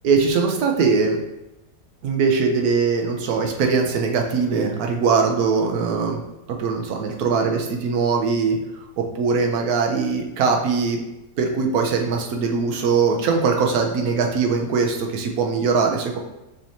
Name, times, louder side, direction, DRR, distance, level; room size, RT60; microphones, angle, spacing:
voice 1, 0.0-1.2 2.0-6.2 6.5-8.6 9.0-11.0 11.4-16.2, right 5 dB, 65° right, 3 dB, 1.1 m, -21 dB
6.3 x 3.0 x 2.7 m, 0.96 s
omnidirectional pair, 1.9 m